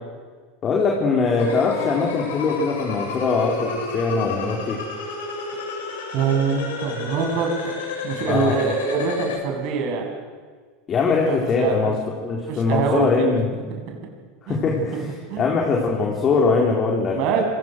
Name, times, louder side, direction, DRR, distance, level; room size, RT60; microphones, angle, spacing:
voice 1, 0.6-4.8 8.3-8.6 10.9-13.5 14.5-15.1 15.4-17.2, left 4 dB, 35° left, -1 dB, 4.5 m, -21 dB
sound 1, 1.4-9.4, left 4 dB, 65° left, 7.9 m, -32 dB
voice 2, 6.1-7.8 8.0-10.0 11.3-11.9 12.5-13.1 13.9-14.0 14.5-14.6 14.9-15.4 17.1-17.4, right 6 dB, 50° right, 2 dB, 7.9 m, -24 dB
27.5 x 26.0 x 6.6 m, 1.5 s
figure-of-eight pair, 75°, 0 cm